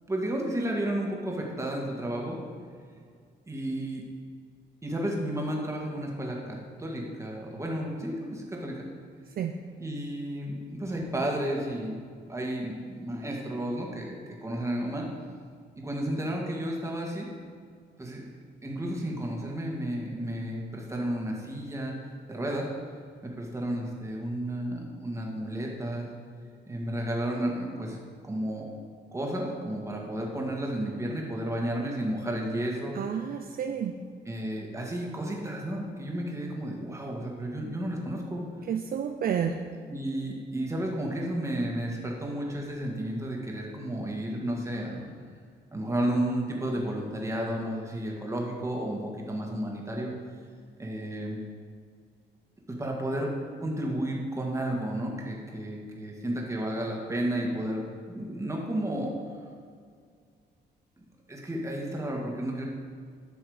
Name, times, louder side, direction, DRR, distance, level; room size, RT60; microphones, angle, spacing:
voice 1, 0.1-2.4 2.9-3.0 3.5-4.0 4.8-8.8 9.8-12.0 12.3-15.1 15.8-17.3 18.0-18.2 18.6-22.0 22.3-22.7 23.2-26.1 26.7-28.0 28.2-28.7 29.1-33.0 34.3-38.4 39.9-45.1 45.7-50.1 50.8-51.4 52.7-53.3 53.6-59.1 61.3-62.7, right 1 dB, 15° right, -1 dB, 1.8 m, -32 dB
voice 2, 32.9-34.0 38.7-39.6, right 8 dB, 55° right, 5 dB, 0.5 m, -30 dB
12.0 x 6.3 x 5.0 m, 2.1 s
cardioid pair, 125°, 18 cm